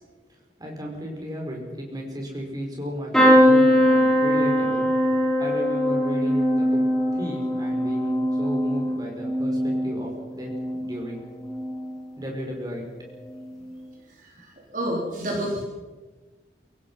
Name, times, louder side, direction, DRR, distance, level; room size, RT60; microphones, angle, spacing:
voice 1, 0.6-4.9 5.4-6.8 7.1-10.5 10.8-11.2 12.2-12.8, equal, 20° right, 0 dB, 5.3 m, -34 dB
sound 1, 3.1-11.0 11.4-12.0 13.2-13.4 13.7-13.8, equal, 5° left, 5.7 m, -21 dB
voice 2, 14.2-15.6, equal, 50° right, -2 dB, 4.0 m, -29 dB
28.0 x 17.0 x 5.7 m, 1.3 s
head